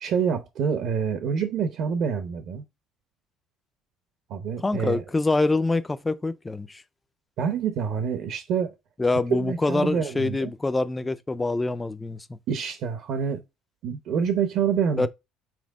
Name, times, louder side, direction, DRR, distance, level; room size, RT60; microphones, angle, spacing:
voice 1, 0.0-2.6 4.3-5.0 7.4-8.7 9.3-10.5 12.5-13.4 13.8-15.1, right 7 dB, 50° right, 0.8 m, -27 dB
voice 2, 4.6-6.8 9.0-12.4 15.0-15.1, left 2 dB, 10° left, 0.4 m, -25 dB
6.1 x 4.4 x 3.5 m
cardioid pair, 170°, 0 cm